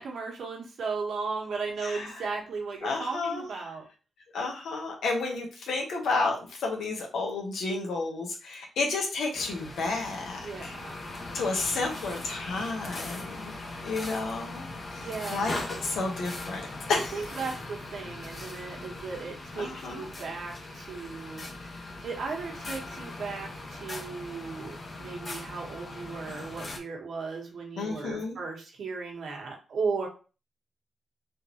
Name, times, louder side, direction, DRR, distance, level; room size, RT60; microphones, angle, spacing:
voice 1, 0.0-3.8 10.4-11.0 15.0-15.6 16.9-30.1, right 4 dB, 70° right, 0 dB, 1.2 m, -36 dB
voice 2, 2.8-3.5 4.3-6.4 6.6-10.7 11.3-13.5 13.8-14.7 15.3-15.5 15.8-16.6 16.9-17.1 19.6-20.1 27.8-28.4, left 3 dB, 85° left, 1 dB, 1.0 m, -31 dB
sound 1, 9.3-26.8, left 2 dB, 40° left, 0.8 m, -40 dB
3.6 x 2.6 x 2.9 m, 0.34 s
cardioid pair, 80°, 0 cm